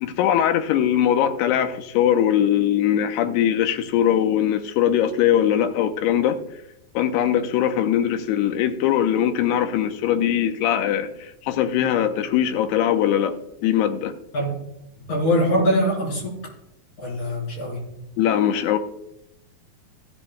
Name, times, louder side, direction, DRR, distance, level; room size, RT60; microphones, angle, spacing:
voice 1, 0.0-6.4 6.9-14.1 18.2-18.8, left 10 dB, 90° left, 8 dB, 2.8 m, -21 dB
voice 2, 15.1-16.4 17.0-17.8, equal, 50° left, -2 dB, 5.0 m, -22 dB
15.5 x 11.0 x 2.2 m, 0.80 s
omnidirectional pair, 4.7 m